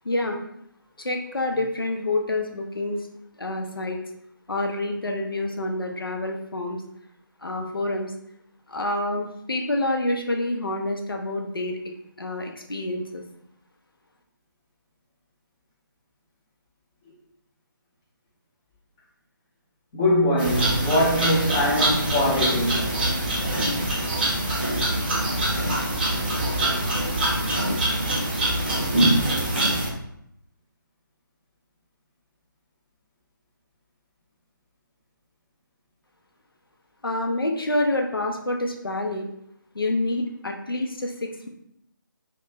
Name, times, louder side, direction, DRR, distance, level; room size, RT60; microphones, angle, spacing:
voice 1, 0.0-0.4 1.0-3.1 3.4-4.0 4.5-6.8 7.4-8.1 8.7-11.8 12.2-13.2 37.0-39.3 39.7-41.5, left 2 dB, 80° left, 0.5 m, -27 dB
voice 2, 19.9-22.9, left 1 dB, 10° left, 0.5 m, -22 dB
sound 1, 20.4-29.9, right 1 dB, 30° right, 0.6 m, -24 dB
2.4 x 2.1 x 3.1 m
figure-of-eight pair, 150°, 12 cm